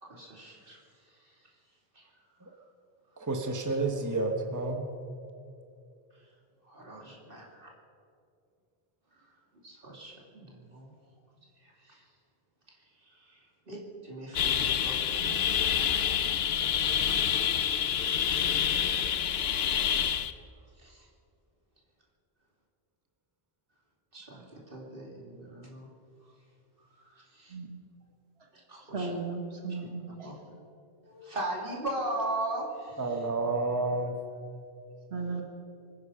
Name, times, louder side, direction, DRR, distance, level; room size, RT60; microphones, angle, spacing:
voice 1, 0.0-1.5 1.9-2.1 2.5-2.6 6.1-6.3 6.6-7.7 9.2-9.3 9.6-10.9 11.6-12.0 12.8-16.3 17.3-17.7 18.9-19.7 20.8-21.1 24.1-25.9 26.9-27.6 28.5-29.1 29.8-29.9 30.2-30.4 31.0-33.2, right 1 dB, 60° right, -2 dB, 3.2 m, -40 dB
voice 2, 3.2-4.8 33.0-34.2, right 3 dB, 20° right, 3 dB, 1.2 m, -30 dB
sound 1, 14.4-20.3, left 9 dB, 80° left, 0.9 m, -27 dB
voice 3, 28.9-30.3 35.1-35.4, right 4 dB, 80° right, 3 dB, 1.7 m, -35 dB
24.0 x 10.5 x 5.7 m, 2.5 s
omnidirectional pair, 1.0 m